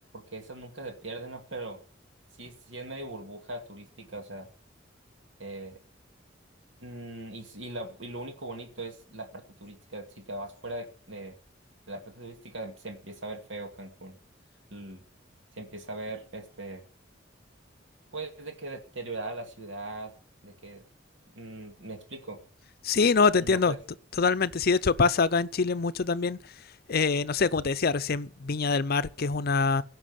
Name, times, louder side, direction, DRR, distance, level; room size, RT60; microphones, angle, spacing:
voice 1, 0.1-1.8 2.4-4.5 5.4-5.8 6.8-11.4 11.9-14.2 14.7-15.0 15.6-16.8 18.1-20.1 20.4-20.9 21.3-22.4 23.4-23.8, right 2 dB, 70° right, 2.4 m, -40 dB
voice 2, 22.8-23.7 24.2-26.4 26.9-29.8, left 4 dB, 55° left, 0.6 m, -24 dB
16.5 x 6.1 x 9.5 m
head